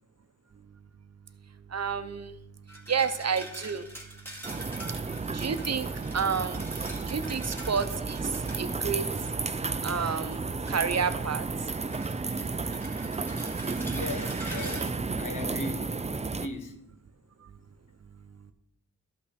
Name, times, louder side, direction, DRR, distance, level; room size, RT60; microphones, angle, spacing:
voice 1, 1.7-2.3 2.9-3.8 5.3-5.9 6.1-6.6 7.1-8.2 8.6-9.0 9.8-11.4, right 6 dB, 55° right, 0.7 m, -29 dB
sound 1, 2.7-11.2 11.6-14.9, equal, 5° left, 2.1 m, -46 dB
sound 2, 4.4-16.5, right 4 dB, 20° right, 0.4 m, -33 dB
voice 2, 13.9-16.0 16.2-16.8, left 2 dB, 80° left, 1.2 m, -38 dB
13.0 x 5.6 x 4.2 m
wide cardioid pair, 90°, 31 cm